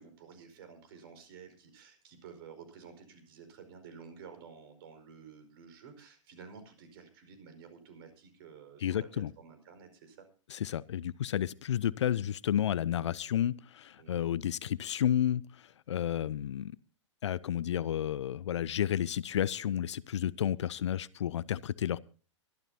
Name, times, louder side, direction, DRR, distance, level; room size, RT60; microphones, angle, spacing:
voice 1, 0.0-10.2 14.0-14.3, right 6 dB, 50° right, 5.1 m, -52 dB
voice 2, 8.8-9.3 10.5-16.8 17.2-22.0, left 10 dB, 65° left, 0.6 m, -31 dB
23.5 x 12.0 x 2.8 m
figure-of-eight pair, 115°, 16 cm